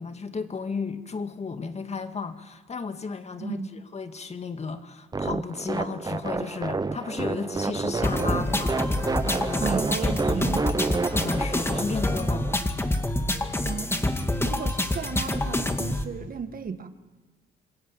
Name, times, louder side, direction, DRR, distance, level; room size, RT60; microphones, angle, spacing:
voice 1, 0.0-10.7 11.1-12.5, left 4 dB, 35° left, 8 dB, 2.0 m, -34 dB
sound 1, 5.1-12.6, right 3 dB, 20° right, 0.8 m, -30 dB
sound 2, 8.0-16.0, left 1 dB, 10° left, 2.0 m, -27 dB
voice 2, 9.6-10.7 13.6-13.9 14.4-16.9, right 6 dB, 45° right, 9 dB, 1.7 m, -34 dB
26.5 x 21.0 x 8.9 m, 1.3 s
cardioid pair, 90°, 20 cm